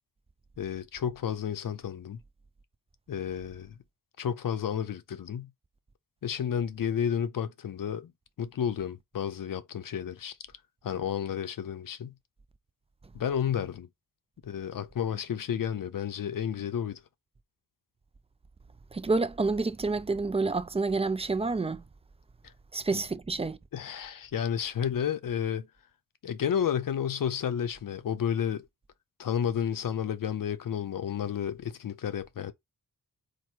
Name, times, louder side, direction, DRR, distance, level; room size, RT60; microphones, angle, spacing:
voice 1, 0.6-2.2 3.1-3.7 4.2-5.5 6.2-8.1 8.4-10.4 10.8-12.1 13.1-13.9 14.4-17.0 22.9-23.0 23.7-25.7 26.2-28.7 29.2-32.5, left 8 dB, 70° left, 0.6 m, -31 dB
voice 2, 18.9-21.8 22.7-23.6, right 3 dB, 20° right, 0.3 m, -28 dB
4.5 x 2.6 x 4.4 m
wide cardioid pair, 155°, 34 cm